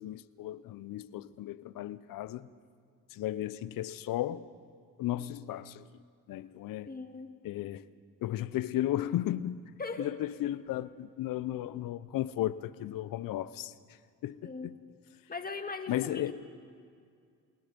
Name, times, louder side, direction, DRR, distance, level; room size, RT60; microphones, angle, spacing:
voice 1, 0.0-2.5 3.1-4.4 5.0-5.8 6.3-6.9 7.4-7.8 8.2-9.6 10.0-13.7 14.2-14.8 15.9-16.3, left 13 dB, 70° left, 0.8 m, -34 dB
voice 2, 6.8-7.3 9.8-10.1 14.4-14.7 15.3-16.3, left 4 dB, 25° left, 2.1 m, -39 dB
29.0 x 18.5 x 5.3 m
supercardioid pair, 60°, 35 cm